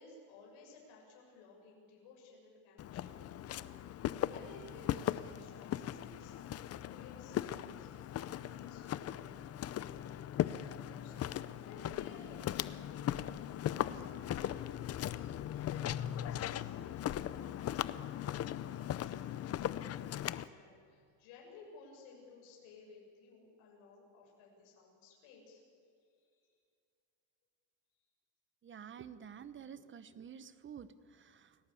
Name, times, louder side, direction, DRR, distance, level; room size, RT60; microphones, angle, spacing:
voice 1, 0.0-7.9 8.2-25.6 26.1-26.5, left 3 dB, 80° left, -2 dB, 7.2 m, -58 dB
Walk footsteps, 2.8-20.5, left 11 dB, 35° left, 0.6 m, -38 dB
voice 2, 28.6-31.6, right 8 dB, 25° right, 14 dB, 0.9 m, -50 dB
28.5 x 18.0 x 8.5 m, 2.3 s
cardioid pair, 155°, 46 cm